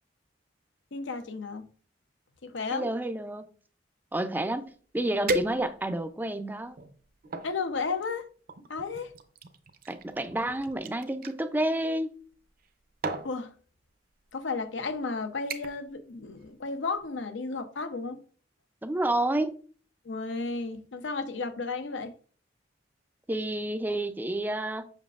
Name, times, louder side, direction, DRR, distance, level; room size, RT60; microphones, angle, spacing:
voice 1, 0.9-1.7 2.4-2.9 7.4-8.3 8.7-9.1 13.2-13.5 14.3-18.2 20.0-22.1, left 4 dB, 75° left, 0.7 m, -33 dB
voice 2, 2.7-3.4 4.1-6.8 9.9-12.2 18.8-19.5 23.3-24.8, right 1 dB, 10° right, 0.4 m, -30 dB
sound 1, 4.6-4.7 5.3-6.0 6.7-7.5 8.5-11.4 12.5-12.7 13.0-13.3 14.2-14.4 14.8-15.1 15.5-15.9 16.2-16.6 16.9-17.0, right 2 dB, 50° right, 0.7 m, -35 dB
7.1 x 6.0 x 2.4 m
head